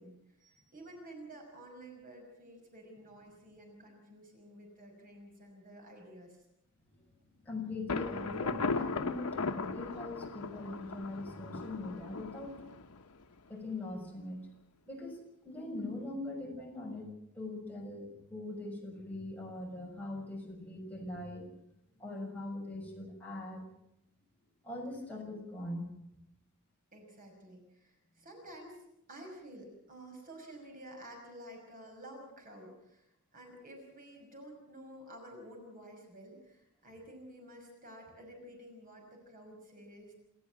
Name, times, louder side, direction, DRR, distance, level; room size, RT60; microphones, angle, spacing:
voice 1, 0.0-6.4 26.9-28.8 29.1-33.0 33.3-40.1, right 1 dB, 40° right, 2 dB, 5.9 m, -51 dB
voice 2, 7.4-12.6 13.5-14.4 14.9-21.4 22.0-23.6 24.6-25.9, left 2 dB, 10° left, -1 dB, 6.3 m, -41 dB
Thunder, 7.9-13.5, left 4 dB, 80° left, 1.1 m, -37 dB
28.0 x 13.5 x 7.6 m, 0.81 s
head